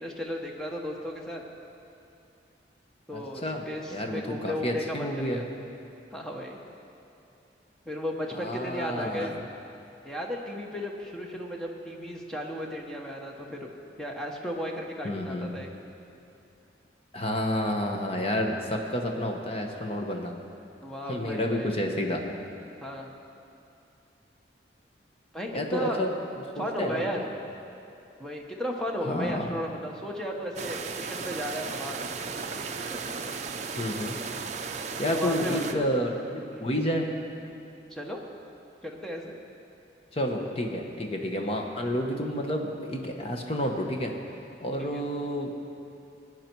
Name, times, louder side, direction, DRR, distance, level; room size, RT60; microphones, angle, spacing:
voice 1, 0.0-1.4 3.1-5.4 6.1-6.6 7.8-9.3 10.0-13.7 14.0-15.7 20.8-21.7 22.8-23.1 25.3-26.0 26.6-27.3 28.2-32.3 32.8-33.1 35.0-35.9 36.5-36.7 37.9-38.2 38.8-39.3 44.8-45.0, equal, 5° left, 0 dB, 1.1 m, -35 dB
voice 2, 3.1-3.7 3.9-5.4 8.4-9.3 15.0-15.5 17.1-20.3 21.0-22.2 25.5-26.2 26.6-27.2 29.0-29.5 33.8-34.1 35.0-37.1 40.1-44.2 44.6-45.5, equal, 35° left, 2 dB, 1.1 m, -30 dB
sound 1, 30.6-35.7, right 5 dB, 40° right, 0.6 m, -35 dB
18.5 x 9.5 x 4.6 m, 2.7 s
head